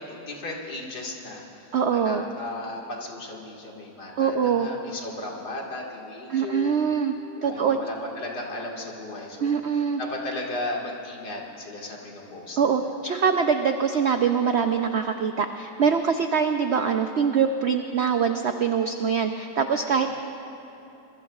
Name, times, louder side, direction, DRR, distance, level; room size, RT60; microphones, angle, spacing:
voice 1, 0.0-6.8 7.4-9.6 10.0-12.9 19.9-20.1, left 2 dB, 70° left, -2 dB, 2.5 m, -36 dB
voice 2, 1.7-2.2 4.2-4.7 6.3-7.1 7.4-7.8 9.4-10.0 12.6-20.1, right 6 dB, 80° right, 6 dB, 0.6 m, -23 dB
25.5 x 22.0 x 2.4 m, 3.0 s
omnidirectional pair, 1.9 m